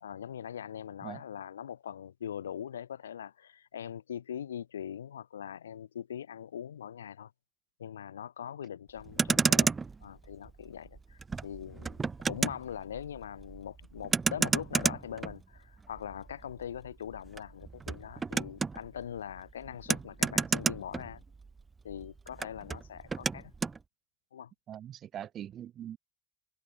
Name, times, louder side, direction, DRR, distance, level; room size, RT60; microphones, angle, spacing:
voice 1, 0.0-7.3 7.8-9.7 10.0-21.2 21.8-23.5 24.3-24.5, left 9 dB, 85° left, 2.2 m, -42 dB
Motor vehicle (road), 9.0-21.6 21.9-23.8, right 4 dB, 25° right, 1.5 m, -32 dB
voice 2, 24.7-26.0, right 10 dB, 50° right, 2.0 m, -42 dB
hypercardioid pair, 60°, 0 cm